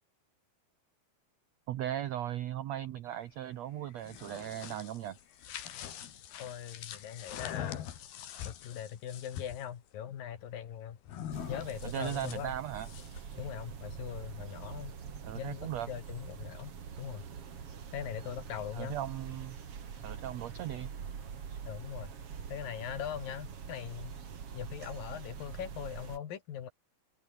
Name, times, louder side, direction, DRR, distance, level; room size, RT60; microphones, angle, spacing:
voice 1, 1.7-5.2 11.8-12.9 15.2-15.9 18.7-19.6 20.0-20.9, right 11 dB, 80° right, 1.5 m, -37 dB
sound 1, 3.9-9.6 11.1-13.3, left 10 dB, 85° left, 4.2 m, -43 dB
voice 2, 6.4-7.8 8.4-11.0 11.5-12.5 13.4-15.0 15.4-17.3 17.9-19.0 21.7-22.1 22.5-24.2 24.5-26.7, left 9 dB, 70° left, 3.7 m, -41 dB
sound 2, 11.3-26.2, right 7 dB, 45° right, 2.9 m, -45 dB
omnidirectional pair, 4.3 m